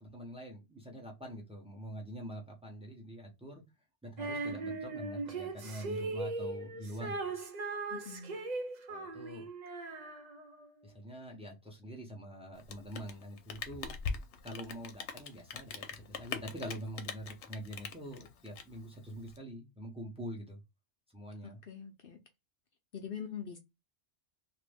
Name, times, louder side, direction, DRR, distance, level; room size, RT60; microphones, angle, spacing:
voice 1, 0.0-3.6 4.0-7.4 8.9-9.5 10.8-13.9 14.4-20.6 21.1-21.6, equal, 5° right, 0.9 m, -45 dB
Female singing, 4.2-10.7, right 3 dB, 45° right, 0.7 m, -39 dB
voice 2, 7.9-8.4 21.4-22.2 22.9-23.6, left 7 dB, 60° left, 0.8 m, -43 dB
Rain, 12.5-19.4, left 5 dB, 90° left, 1.0 m, -42 dB
2.9 x 2.5 x 3.4 m
omnidirectional pair, 1.2 m